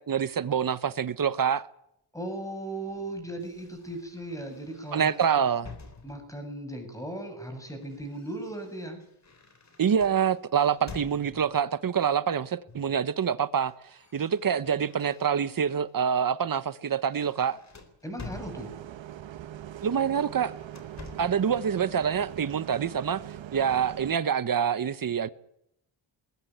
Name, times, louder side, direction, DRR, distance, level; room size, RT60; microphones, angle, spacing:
voice 1, 0.0-1.6 4.9-5.7 9.8-13.7 14.1-17.6 19.8-20.5 21.2-23.2 23.5-25.3, right 7 dB, 45° right, 1.1 m, -26 dB
voice 2, 2.1-5.4 6.0-9.0 18.0-18.7, right 1 dB, 5° left, 7.7 m, -37 dB
sound 1, 3.4-6.5 7.4-11.6 12.7-13.0 13.3-15.6 16.1-16.3 16.7-19.1 20.0-21.5, left 4 dB, 35° left, 4.0 m, -49 dB
Bus, 18.3-24.2, right 11 dB, 70° right, 1.1 m, -42 dB
21.5 x 17.0 x 9.3 m
wide cardioid pair, 125°, 47 cm